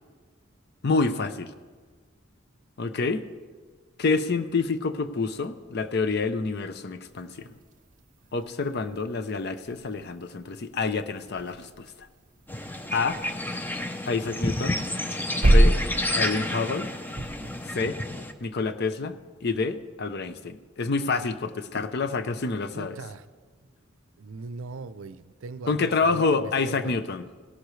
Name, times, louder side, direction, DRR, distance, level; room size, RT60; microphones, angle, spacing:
voice 1, 0.8-1.5 2.8-3.2 4.0-7.5 8.3-11.9 12.9-13.2 14.1-14.8 15.4-15.8 16.1-16.9 17.7-18.0 18.4-23.0 25.7-27.2, left 4 dB, 55° left, 10 dB, 0.6 m, -27 dB
sound 1, 7.1-17.8, right 1 dB, 40° right, 0.7 m, -28 dB
sound 2, 12.5-18.3, left 1 dB, 10° left, 0.6 m, -31 dB
voice 2, 22.7-23.3 24.2-27.0, right 4 dB, 75° right, 14 dB, 0.5 m, -39 dB
17.5 x 11.5 x 3.2 m, 1.5 s
head